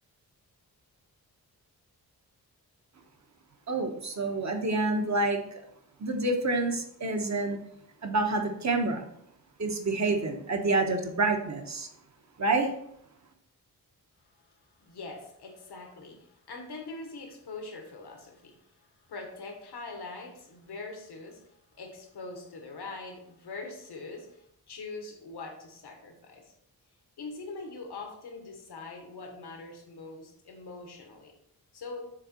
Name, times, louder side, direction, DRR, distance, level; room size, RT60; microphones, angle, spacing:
voice 1, 3.7-5.6 6.0-7.6 8.0-9.0 9.6-11.9 12.4-12.7, right 2 dB, 45° right, 4 dB, 1.1 m, -28 dB
voice 2, 14.8-26.5 27.2-31.3 31.7-32.0, left 3 dB, 90° left, 2 dB, 1.3 m, -43 dB
6.6 x 3.6 x 4.3 m, 0.74 s
cardioid pair, 70°, 38 cm